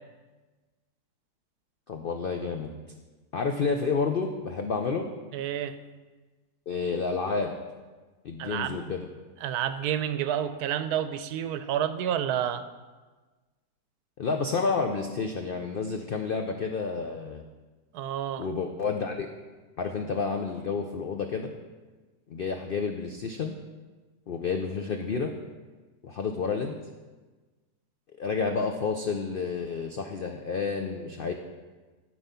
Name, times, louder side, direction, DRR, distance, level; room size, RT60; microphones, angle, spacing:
voice 1, 1.9-2.7 3.3-5.1 6.7-7.5 8.2-9.1 14.2-17.4 18.4-19.3 19.8-21.5 22.3-23.5 24.3-25.3 26.0-26.8 28.2-31.3, left 5 dB, 75° left, 4 dB, 0.5 m, -30 dB
voice 2, 5.3-5.8 8.4-8.9 9.4-12.6 17.9-18.5, right 10 dB, 75° right, 11 dB, 1.1 m, -29 dB
12.0 x 4.7 x 5.6 m, 1.3 s
omnidirectional pair, 1.7 m